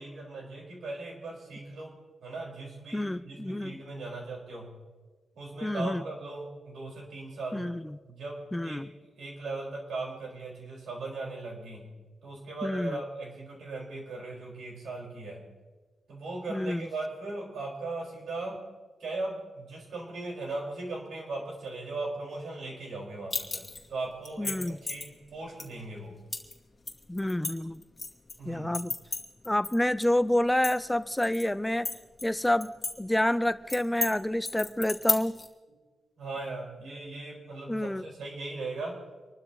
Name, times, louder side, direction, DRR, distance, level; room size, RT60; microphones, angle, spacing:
voice 1, 0.0-2.0 2.2-4.7 5.3-7.7 8.1-11.9 12.2-15.4 16.1-18.6 19.0-26.2 28.4-28.8 36.2-39.0, right 2 dB, 75° right, -2 dB, 5.1 m, -38 dB
voice 2, 2.9-3.7 5.6-6.0 7.5-8.0 8.5-8.9 12.6-13.0 16.5-16.9 24.4-24.8 27.1-27.8 28.5-28.9 29.5-31.9 32.2-32.7 33.0-35.4 37.7-38.0, left 1 dB, 10° left, 14 dB, 0.4 m, -28 dB
sound 1, 23.3-23.9 24.3-25.1 25.6-25.7 26.3-26.5 26.9-28.3 28.7-29.8 30.0-30.1 30.5-31.4 31.9-32.9 33.2-33.3 33.7-34.1 34.5-35.5, left 3 dB, 30° left, 2.3 m, -32 dB
26.5 x 12.5 x 3.1 m, 1.3 s
cardioid pair, 80°, 0 cm